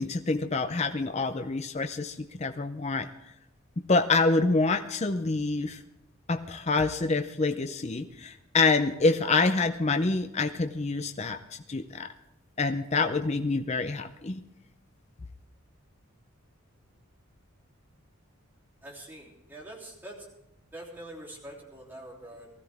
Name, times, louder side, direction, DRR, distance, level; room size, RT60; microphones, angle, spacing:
voice 1, 0.0-3.1 3.9-5.8 6.3-11.4 11.7-12.1 12.6-14.4, left 3 dB, 30° left, 7 dB, 0.5 m, -26 dB
voice 2, 18.8-20.3 20.7-22.5, right 1 dB, 10° right, -4 dB, 3.2 m, -44 dB
19.5 x 14.0 x 3.5 m, 0.86 s
head